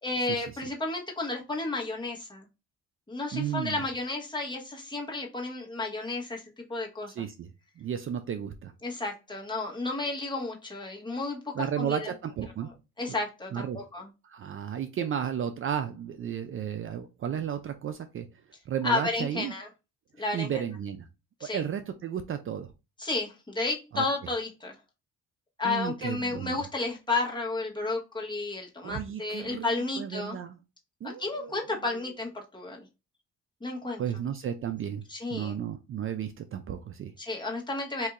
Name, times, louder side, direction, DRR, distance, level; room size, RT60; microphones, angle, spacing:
voice 1, 0.0-2.5 3.1-7.1 8.8-12.1 13.0-14.1 18.8-19.7 20.2-20.5 21.4-21.6 23.0-24.7 25.6-30.4 31.2-32.8 33.6-34.0 35.1-35.5 37.2-38.1, left 3 dB, 15° left, 0 dB, 1.2 m, -32 dB
voice 2, 3.3-3.8 7.2-7.5 7.8-8.7 11.5-12.7 13.5-13.8 14.2-18.3 18.7-19.5 20.3-21.1 21.4-22.7 23.9-24.1 25.6-26.6 28.8-30.6 31.0-32.1 34.0-35.0 35.3-37.1, right 8 dB, 45° right, 8 dB, 0.4 m, -33 dB
4.2 x 2.7 x 2.4 m, 0.27 s
cardioid pair, 90°, 30 cm